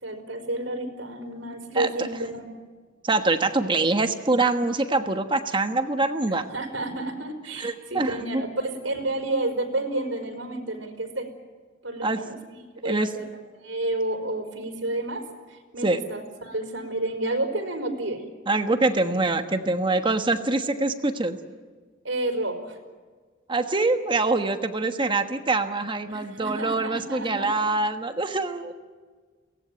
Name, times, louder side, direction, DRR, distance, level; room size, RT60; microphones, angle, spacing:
voice 1, 0.0-2.5 6.5-11.3 11.8-12.4 12.8-13.3 13.6-18.2 22.0-22.8 26.1-27.7, right 2 dB, 75° right, 3 dB, 4.8 m, -30 dB
voice 2, 3.0-6.5 7.6-8.4 12.0-12.2 12.8-13.1 15.8-16.0 18.5-21.4 23.5-28.7, right 2 dB, 25° right, 7 dB, 1.3 m, -24 dB
23.5 x 18.5 x 9.1 m, 1.5 s
head